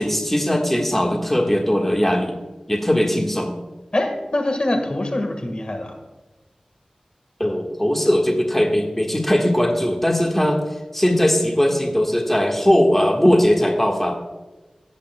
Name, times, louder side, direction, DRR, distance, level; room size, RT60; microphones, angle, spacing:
voice 1, 0.0-2.4 2.7-3.6 7.4-10.6 10.9-14.2, equal, 10° left, 1 dB, 1.4 m, -19 dB
voice 2, 3.9-6.0, left 1 dB, 50° left, 4 dB, 1.5 m, -24 dB
17.0 x 8.1 x 2.2 m, 1.2 s
wide cardioid pair, 45°, 2 cm